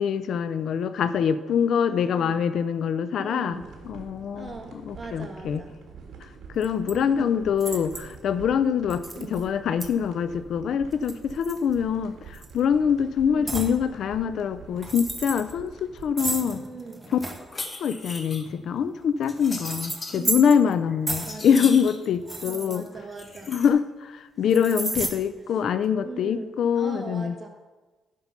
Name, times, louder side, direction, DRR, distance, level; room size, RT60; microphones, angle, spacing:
voice 1, 0.0-4.5 4.8-5.6 6.2-16.6 17.1-17.2 17.8-22.9 23.5-27.3, left 7 dB, 65° left, 13 dB, 0.4 m, -24 dB
voice 2, 1.9-2.4 3.2-3.7 4.3-5.8 6.8-7.3 7.7-7.8 9.1-9.5 13.2-13.6 16.3-17.0 20.1-20.6 21.2-21.7 22.4-23.6 25.5-25.6 26.0-27.5, right 4 dB, 35° right, 2 dB, 1.6 m, -40 dB
sound 1, 3.5-16.1, right 5 dB, 65° right, 1.7 m, -46 dB
sound 2, 6.6-6.9 7.6-8.1 8.9-9.4 9.8-9.9 10.9-12.0 12.3-12.6 13.5-13.8 14.7-15.5 16.2-17.4 18.5-20.7 21.1-21.4 22.1-23.4 24.5-25.1, right 2 dB, 15° right, 1.1 m, -32 dB
sound 3, 17.4-18.5 19.3-20.2 20.7-22.1 23.1-23.7, left 3 dB, 30° left, 1.2 m, -38 dB
9.7 x 5.5 x 5.9 m, 1.3 s
cardioid pair, 90°, 0 cm